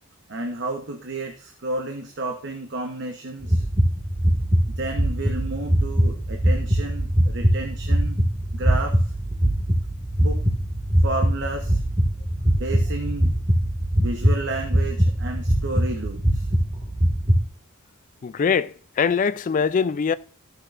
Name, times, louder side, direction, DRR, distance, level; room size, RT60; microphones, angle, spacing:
voice 1, 0.3-3.6 4.8-8.2 8.5-9.1 10.2-10.4 11.0-11.8 12.6-13.3 13.9-16.5, right 2 dB, 55° right, 0.9 m, -31 dB
sound 1, 3.4-17.4, equal, 25° right, 1.7 m, -22 dB
voice 2, 18.2-20.1, left 6 dB, 35° left, 0.3 m, -22 dB
13.5 x 6.6 x 2.5 m
head